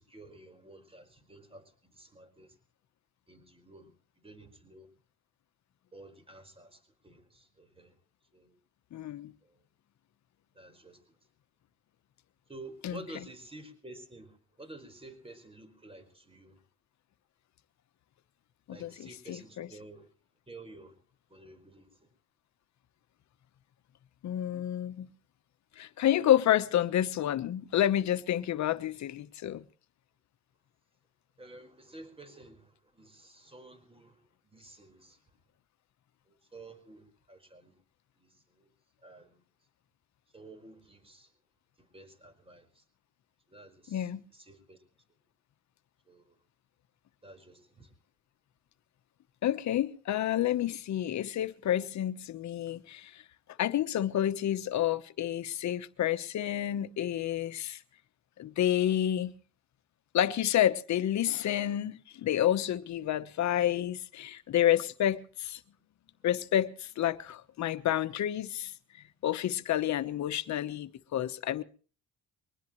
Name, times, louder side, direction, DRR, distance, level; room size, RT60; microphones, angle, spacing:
voice 1, 0.0-2.6 3.3-4.9 5.9-8.0 8.3-8.5 9.4-9.6 10.5-11.2 12.5-16.6 18.7-20.1 20.5-21.0 21.3-22.1 31.4-35.2 36.3-37.8 38.2-38.7 39.0-39.4 40.3-41.3 41.8-42.8 43.5-44.8 46.0-46.4 47.2-47.9, right 2 dB, 20° right, 4.8 m, -51 dB
voice 2, 8.9-9.3 12.8-13.0 18.7-19.7 24.2-25.1 25.8-29.6 43.9-44.2 49.4-53.2 53.6-57.8 58.4-59.3 60.1-65.6 66.2-68.7 69.2-71.6, left 11 dB, 65° left, 1.1 m, -29 dB
23.0 x 19.5 x 3.1 m
cardioid pair, 90°, 30 cm